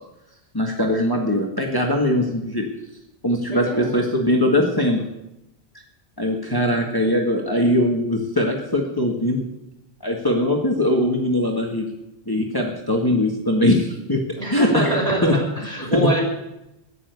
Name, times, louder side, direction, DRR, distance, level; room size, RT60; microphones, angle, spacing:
voice 1, 0.5-2.7 3.2-5.0 6.2-9.4 10.0-11.9 12.3-14.2 14.5-14.9 15.2-15.4 15.9-16.1, left 1 dB, 20° left, 0 dB, 1.8 m, -21 dB
voice 2, 3.5-3.9 14.4-16.2, right 2 dB, 35° right, -2 dB, 5.5 m, -24 dB
15.0 x 10.0 x 8.2 m, 0.90 s
omnidirectional pair, 1.0 m